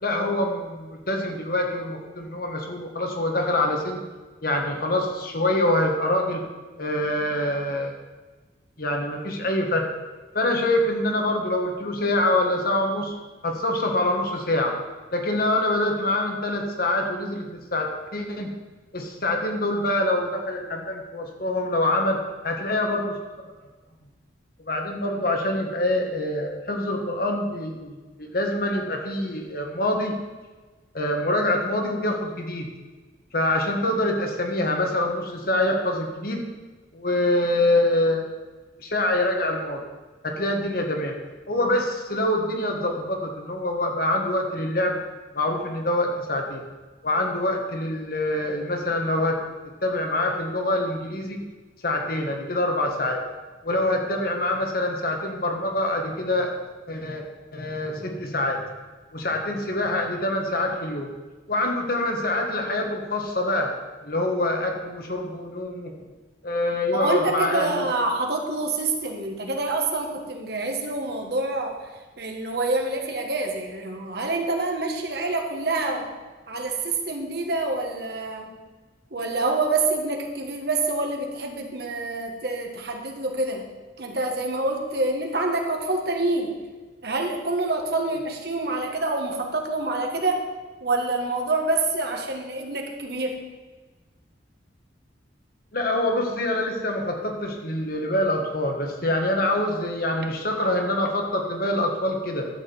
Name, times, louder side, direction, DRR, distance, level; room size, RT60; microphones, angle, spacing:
voice 1, 0.0-4.0 4.4-6.4 6.7-7.9 8.8-9.9 10.3-13.1 13.4-14.8 15.1-18.5 18.9-22.2 22.4-23.2 24.6-30.2 30.9-32.7 33.3-36.4 36.9-38.2 38.8-39.8 40.2-41.1 41.5-44.9 45.3-46.6 47.0-49.4 49.8-51.4 51.8-53.2 53.6-56.5 56.9-57.2 57.5-58.6 59.1-61.1 61.5-63.7 64.0-65.9 66.4-67.8 95.7-102.5, left 1 dB, 55° left, 2 dB, 1.6 m, -25 dB
voice 2, 66.9-71.8 72.2-76.1 76.5-78.5 79.1-83.6 84.0-86.6 87.0-90.5 90.8-93.4, right 2 dB, 60° right, 2 dB, 1.7 m, -26 dB
12.0 x 5.1 x 7.9 m, 1.3 s
head